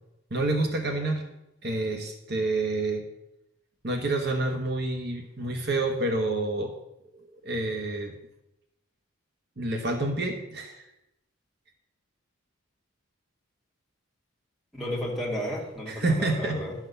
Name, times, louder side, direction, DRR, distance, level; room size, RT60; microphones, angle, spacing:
voice 1, 0.3-1.2 1.6-3.1 3.8-6.7 7.1-8.1 9.6-10.9 15.9-16.6, right 2 dB, 50° right, 4 dB, 1.1 m, -28 dB
voice 2, 14.7-16.7, equal, ahead, -4 dB, 2.4 m, -33 dB
11.5 x 5.9 x 6.8 m, 0.88 s
head